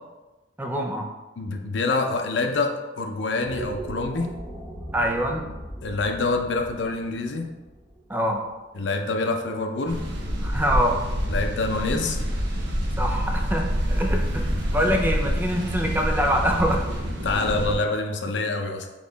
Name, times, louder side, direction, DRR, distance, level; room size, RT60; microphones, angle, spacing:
voice 1, 0.6-1.1 4.9-5.5 8.1-8.4 10.4-11.0 13.0-16.8, equal, 10° right, 2 dB, 0.4 m, -25 dB
voice 2, 1.4-4.3 5.8-7.5 8.7-10.0 11.3-12.2 14.8-14.9 17.2-18.9, left 3 dB, 70° left, 4 dB, 0.5 m, -26 dB
sound 1, 3.3-9.6, right 1 dB, 5° left, 1.0 m, -39 dB
sound 2, 9.9-17.7, equal, 70° right, 0.7 m, -27 dB
4.0 x 3.0 x 3.9 m, 1.1 s
head